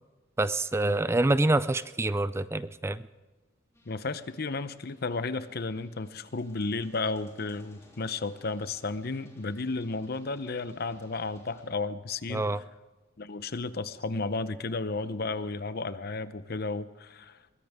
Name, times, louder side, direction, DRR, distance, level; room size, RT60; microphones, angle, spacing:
voice 1, 0.4-3.0 12.3-12.6, right 2 dB, 15° right, 15 dB, 0.4 m, -26 dB
sound 1, 3.7-11.6, left 1 dB, 15° left, 3.2 m, -60 dB
voice 2, 3.9-12.5 13.2-17.4, left 3 dB, 50° left, 13 dB, 0.8 m, -33 dB
22.5 x 15.0 x 3.6 m, 1.2 s
head